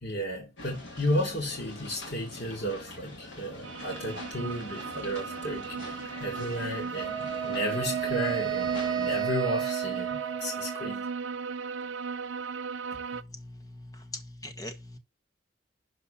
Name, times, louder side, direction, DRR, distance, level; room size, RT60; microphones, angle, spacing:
voice 1, 0.0-11.0, equal, 55° left, 3.1 m, -33 dB
sound 1, 0.6-9.2, left 2 dB, 70° left, 2.9 m, -45 dB
sound 2, 3.6-13.2, right 5 dB, 75° right, 0.6 m, -36 dB
Wind instrument woodwind instrument, 7.0-11.1, right 11 dB, 20° right, 1.4 m, -33 dB
voice 2, 13.1-15.0, left 1 dB, 15° left, 1.3 m, -42 dB
12.0 x 4.7 x 5.7 m
head